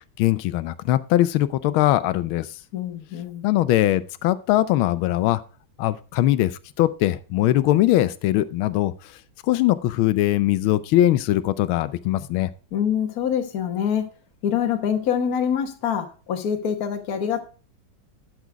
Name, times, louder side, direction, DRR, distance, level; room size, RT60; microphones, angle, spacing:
voice 1, 0.2-2.5 3.4-5.4 5.8-9.2 9.5-12.5, left 14 dB, 85° left, 1.5 m, -21 dB
voice 2, 2.7-3.5 12.7-14.1 14.4-17.4, left 8 dB, 50° left, 1.5 m, -25 dB
12.0 x 6.4 x 4.5 m
omnidirectional pair, 2.2 m